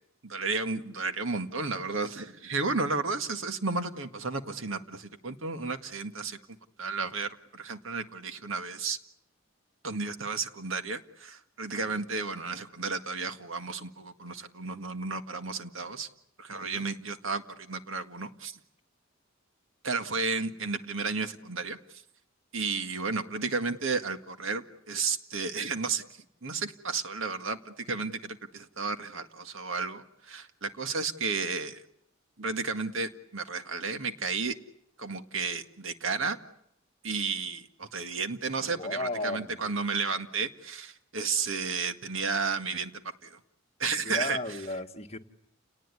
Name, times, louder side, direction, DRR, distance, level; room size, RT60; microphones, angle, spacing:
voice 1, 0.2-6.4 6.8-9.0 9.8-16.1 16.4-18.6 19.8-21.8 22.5-26.0 26.4-31.8 32.4-34.5 35.0-36.4 37.0-42.9 43.2-43.4 43.8-44.4, right 4 dB, 75° right, 1.9 m, -32 dB
voice 2, 38.8-39.7 44.0-45.2, left 2 dB, 30° left, 1.6 m, -34 dB
30.0 x 19.0 x 9.9 m
head